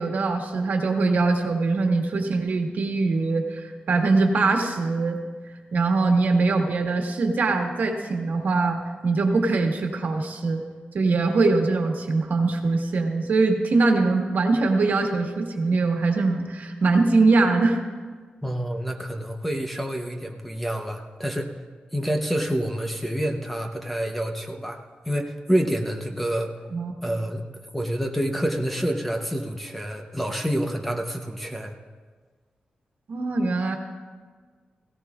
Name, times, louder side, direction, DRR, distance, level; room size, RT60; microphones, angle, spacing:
voice 1, 0.0-5.2 5.7-10.6 10.9-17.8 26.7-26.9 33.1-33.8, right 3 dB, 65° right, 2 dB, 1.5 m, -22 dB
voice 2, 18.4-21.5 21.9-26.5 27.0-27.4 27.7-31.7, equal, 5° left, 3 dB, 0.8 m, -28 dB
17.5 x 16.5 x 2.4 m, 1.5 s
wide cardioid pair, 150°, 3 cm